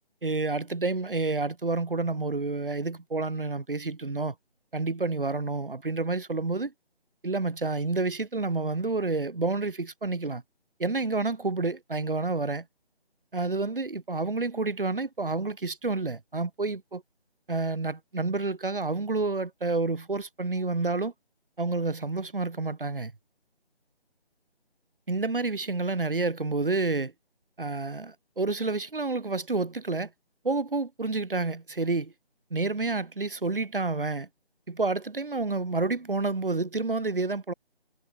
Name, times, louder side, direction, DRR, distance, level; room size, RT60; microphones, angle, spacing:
voice 1, 0.2-4.3 4.7-6.7 7.2-10.4 10.8-12.6 13.3-17.0 17.5-21.1 21.6-23.1 25.1-27.1 27.6-30.1 30.4-32.1 32.5-34.3 34.7-37.5, right 3 dB, 60° right, 2.6 m, -29 dB
figure-of-eight pair, 180°, 31 cm